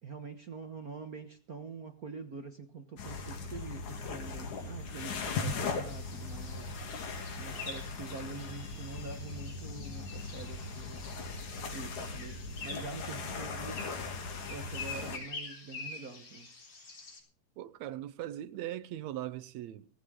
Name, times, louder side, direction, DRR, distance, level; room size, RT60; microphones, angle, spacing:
voice 1, 0.0-6.8 7.4-11.1 11.7-14.0 14.5-16.5, right 4 dB, 55° right, 1.0 m, -45 dB
sound 1, 3.0-15.2, left 4 dB, 85° left, 3.9 m, -39 dB
sound 2, 5.9-17.2, left 4 dB, 50° left, 4.7 m, -47 dB
voice 2, 17.6-19.9, right 13 dB, 75° right, 2.1 m, -40 dB
17.5 x 15.0 x 3.7 m
omnidirectional pair, 3.3 m